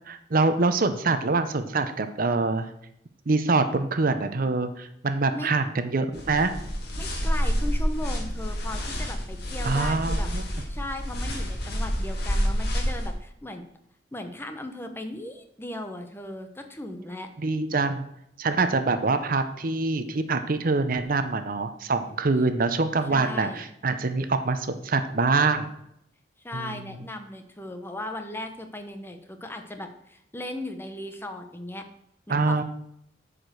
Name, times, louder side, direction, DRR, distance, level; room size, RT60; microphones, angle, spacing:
voice 1, 0.1-2.7 3.3-6.5 9.6-10.4 17.4-18.1 18.4-25.7 26.5-26.8 32.3-32.6, right 3 dB, 50° right, 10 dB, 0.7 m, -25 dB
sound 1, 6.1-13.1, equal, 60° left, 2.1 m, -28 dB
voice 2, 7.0-10.3 10.7-13.6 14.1-17.3 23.1-23.6 26.4-31.8 32.3-32.6, left 1 dB, 15° left, 6 dB, 0.8 m, -37 dB
8.6 x 5.1 x 6.3 m, 0.74 s
head